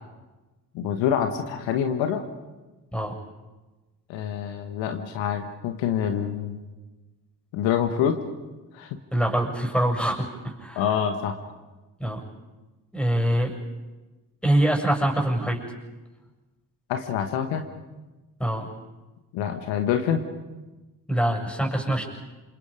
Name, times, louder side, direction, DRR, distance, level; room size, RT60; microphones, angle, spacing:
voice 1, 0.7-2.2 4.1-6.6 7.5-8.2 8.7-9.0 10.7-11.4 16.9-17.6 19.3-20.2, left 8 dB, 70° left, 6 dB, 1.7 m, -26 dB
voice 2, 9.1-10.9 12.0-12.2 12.9-13.6 14.4-15.7 18.4-18.7 21.1-22.0, right 1 dB, ahead, 3 dB, 6.5 m, -24 dB
27.5 x 26.5 x 5.1 m, 1.2 s
figure-of-eight pair, 40°, 47 cm